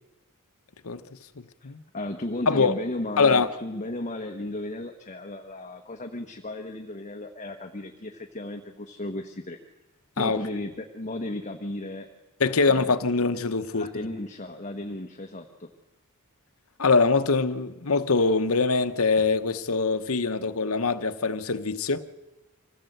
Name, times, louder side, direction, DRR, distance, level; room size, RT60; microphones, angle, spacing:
voice 1, 1.6-9.6 10.2-12.1 12.7-12.9 13.7-15.7, left 1 dB, 35° left, 1.3 m, -35 dB
voice 2, 3.2-3.5 10.2-10.4 12.4-14.1 16.8-22.0, left 4 dB, 65° left, 1.0 m, -23 dB
25.5 x 16.5 x 8.0 m
head